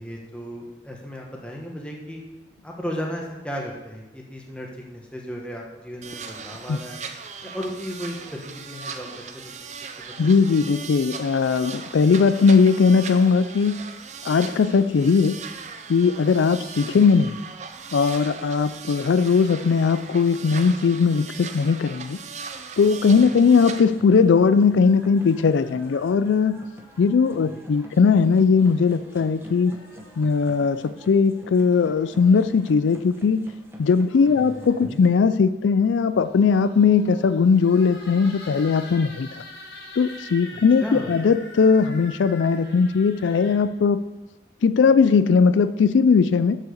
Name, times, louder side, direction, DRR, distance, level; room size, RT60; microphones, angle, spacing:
voice 1, 0.0-2.2 2.6-7.1 7.4-9.7 10.0-10.3 23.1-23.4 27.4-27.6 34.3-35.0 40.5-41.1, equal, 5° left, -1 dB, 1.2 m, -35 dB
sound 1, 6.0-23.8, right 5 dB, 40° right, 0.5 m, -39 dB
voice 2, 10.2-13.8 14.2-15.4 15.9-17.4 17.9-22.2 22.8-26.6 27.0-29.7 30.2-33.5 33.8-39.3 40.0-44.0 44.6-46.6, left 5 dB, 90° left, 13 dB, 0.4 m, -19 dB
sound 2, 22.8-35.1, equal, 15° right, 0.9 m, -46 dB
sound 3, 23.6-27.4 28.6-30.9 31.7-32.7 33.8-35.0 36.0-43.5, left 2 dB, 65° left, 1.8 m, -46 dB
7.2 x 6.7 x 6.4 m, 1.1 s
head